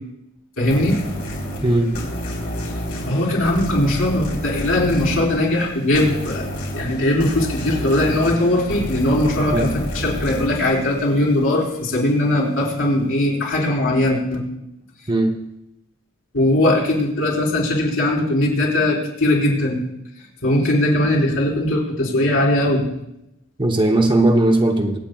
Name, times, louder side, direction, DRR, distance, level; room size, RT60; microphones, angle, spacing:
voice 1, 0.6-1.0 3.0-6.5 6.7-14.4 16.3-19.8 20.4-22.8, left 1 dB, 75° left, -3 dB, 4.3 m, -19 dB
sound 1, 0.7-11.9, equal, 55° left, 3.8 m, -29 dB
voice 2, 1.6-1.9 9.5-9.7 15.1-15.4 23.6-25.0, right 2 dB, 25° right, 3 dB, 0.9 m, -17 dB
25.0 x 8.7 x 2.3 m, 0.85 s
head